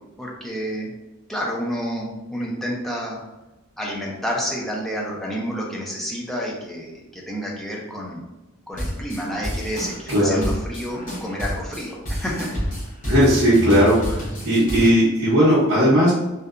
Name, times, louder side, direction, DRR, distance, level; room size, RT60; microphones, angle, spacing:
voice 1, 0.2-0.9 1.3-3.2 3.8-8.2 8.7-12.5, equal, ahead, -3 dB, 0.4 m, -29 dB
sound 1, 8.7-14.9, equal, 40° left, 0.9 m, -29 dB
voice 2, 10.1-10.5 13.1-16.1, equal, 65° right, -10 dB, 0.8 m, -17 dB
2.7 x 2.2 x 2.4 m, 1.0 s
head